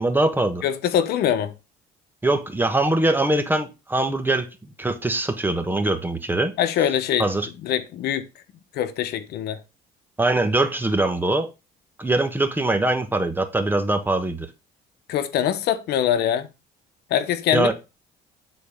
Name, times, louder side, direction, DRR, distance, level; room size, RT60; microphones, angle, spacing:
voice 1, 0.0-0.6 2.2-4.5 4.8-6.5 7.2-7.5 10.2-11.5 12.0-14.5 17.5-17.7, right 2 dB, 10° right, 1.3 m, -22 dB
voice 2, 0.6-1.5 6.6-7.3 7.6-8.3 8.7-9.6 15.1-16.5 17.1-17.7, left 10 dB, 75° left, 1.0 m, -23 dB
9.4 x 4.2 x 5.1 m
cardioid pair, 110°, 17 cm